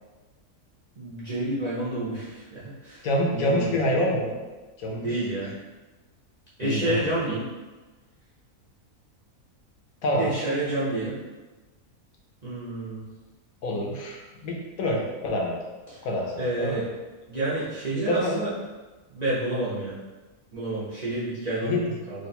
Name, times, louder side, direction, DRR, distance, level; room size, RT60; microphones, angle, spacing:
voice 1, 1.0-3.1 3.3-3.9 4.9-5.5 6.6-7.4 10.2-11.2 12.4-13.0 15.9-16.1 16.4-16.8 17.3-18.5 19.1-20.0 20.5-21.7 22.1-22.3, right 2 dB, 40° right, -10 dB, 0.6 m, -29 dB
voice 2, 3.0-4.4 4.8-5.0 6.6-7.2 10.0-10.3 13.6-15.6 16.0-16.8 18.1-18.4 21.6-21.9, left 1 dB, 75° left, 0 dB, 1.1 m, -26 dB
3.1 x 2.5 x 4.2 m, 1.2 s
omnidirectional pair, 1.6 m